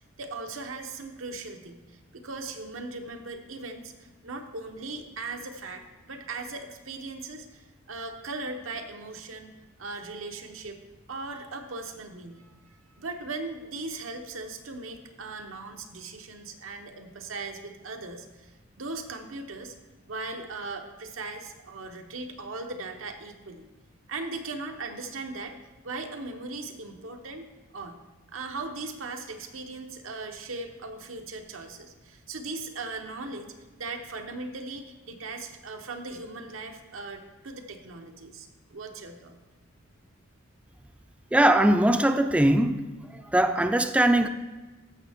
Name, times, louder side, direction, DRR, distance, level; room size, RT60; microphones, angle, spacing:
voice 1, 0.2-9.5 9.8-10.8 11.1-19.7 20.1-23.6 24.1-25.6 25.8-27.4 27.7-28.0 28.3-39.4, right 3 dB, 90° right, 4 dB, 1.0 m, -38 dB
voice 2, 41.3-42.9 43.3-44.3, right 1 dB, 5° right, 7 dB, 0.3 m, -21 dB
14.0 x 6.4 x 3.5 m, 1.2 s
head